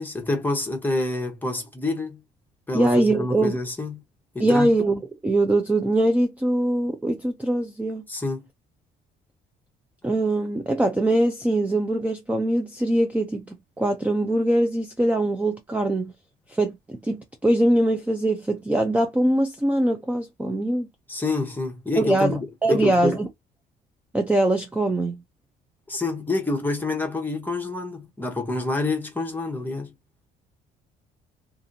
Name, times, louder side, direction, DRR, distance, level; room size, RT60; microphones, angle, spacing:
voice 1, 0.0-2.2 2.7-4.0 4.3-4.7 8.1-8.5 21.1-23.2 25.9-29.9, left 2 dB, 10° left, 0.9 m, -27 dB
voice 2, 2.7-3.6 4.4-8.0 10.0-16.1 16.5-20.9 22.0-23.3 24.1-25.2, right 1 dB, 10° right, 0.5 m, -22 dB
2.6 x 2.6 x 2.7 m
cardioid pair, 110°, 17 cm